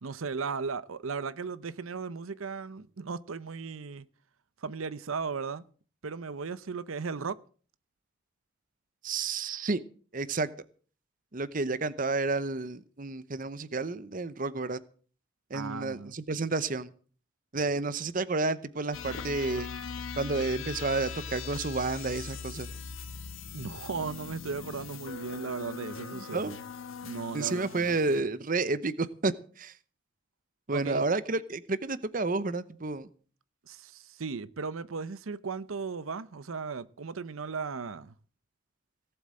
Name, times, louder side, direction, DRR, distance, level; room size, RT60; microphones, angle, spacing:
voice 1, 0.0-4.1 4.6-5.6 6.0-7.4 15.5-16.1 23.5-26.6 27.0-27.9 30.7-31.1 33.7-38.1, right 5 dB, 80° right, 0.7 m, -36 dB
voice 2, 9.0-9.8 10.1-10.5 11.3-14.8 15.5-16.9 17.5-19.7 20.2-22.7 26.2-26.5 27.3-29.7 30.7-33.1, right 3 dB, 40° right, 0.8 m, -30 dB
sound 1, 18.9-28.2, left 5 dB, 75° left, 1.3 m, -40 dB
17.5 x 7.9 x 7.7 m
head